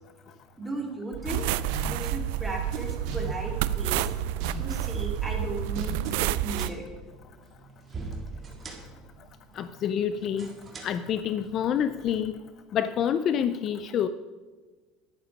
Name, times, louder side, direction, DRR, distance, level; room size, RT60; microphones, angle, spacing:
voice 1, 0.6-1.5 1.8-4.1 4.6-6.9, right 2 dB, 5° right, 0 dB, 2.5 m, -36 dB
sound 1, 1.1-4.1 4.4-6.3, right 5 dB, 65° right, 2.7 m, -37 dB
sound 2, 1.3-6.7, right 12 dB, 80° right, 0.4 m, -29 dB
sound 3, 6.2-12.2, right 3 dB, 20° right, 2.0 m, -44 dB
voice 2, 9.6-10.5 10.8-12.3 12.7-14.1, left 9 dB, 40° left, 12 dB, 0.5 m, -27 dB
11.0 x 10.0 x 5.2 m, 1.4 s
cardioid pair, 140°, 0 cm